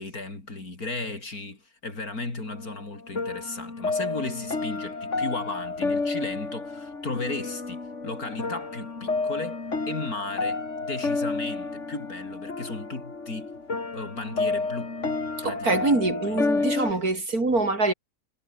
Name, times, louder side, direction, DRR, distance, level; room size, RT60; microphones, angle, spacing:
voice 1, 0.0-13.5 13.9-15.0 15.4-17.0, left 3 dB, 65° left, 5.0 m, -36 dB
sound 1, 2.5-16.9, left 3 dB, 45° left, 3.2 m, -30 dB
voice 2, 15.4-17.9, right 2 dB, 65° right, 5.1 m, -24 dB
omnidirectional pair, 1.7 m